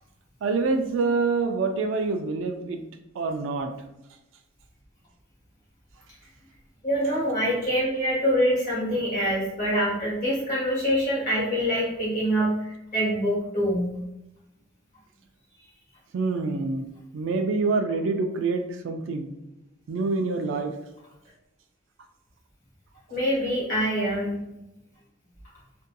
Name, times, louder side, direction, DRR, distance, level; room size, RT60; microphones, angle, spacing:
voice 1, 0.4-2.8 3.2-3.7 16.1-16.8 17.1-19.3 19.9-20.7, right 3 dB, 70° right, 7 dB, 0.3 m, -26 dB
voice 2, 6.8-13.9 23.1-24.4, equal, 40° left, -7 dB, 1.3 m, -25 dB
2.6 x 2.5 x 2.2 m, 0.91 s
head